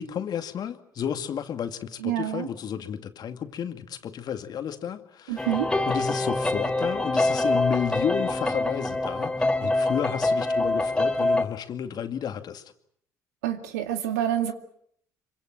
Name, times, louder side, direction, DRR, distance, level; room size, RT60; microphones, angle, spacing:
voice 1, 0.0-5.5 5.9-12.6, left 8 dB, 55° left, 8 dB, 2.3 m, -32 dB
voice 2, 2.0-2.5 5.3-5.7 13.4-14.5, right 11 dB, 80° right, 8 dB, 2.2 m, -27 dB
sound 1, 5.4-11.4, left 2 dB, 10° left, 3.2 m, -25 dB
26.0 x 24.5 x 7.6 m, 0.69 s
hypercardioid pair, 55°, 8 cm